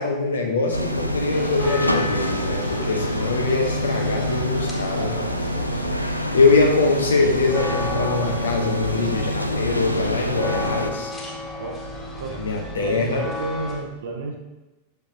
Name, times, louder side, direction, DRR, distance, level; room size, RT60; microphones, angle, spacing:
voice 1, 0.0-5.4 6.3-11.1 12.3-13.2, left 3 dB, 70° left, 2 dB, 1.0 m, -23 dB
sound 1, 0.7-10.9, equal, 90° left, 0.4 m, -26 dB
sound 2, 1.3-13.7, left 2 dB, 20° left, 1.9 m, -34 dB
voice 2, 1.4-1.9 11.6-11.7 12.2-12.4 12.8-14.4, right 3 dB, 60° right, 2 dB, 1.0 m, -32 dB
6.8 x 5.8 x 2.7 m, 1.1 s
figure-of-eight pair, 90°, 0 cm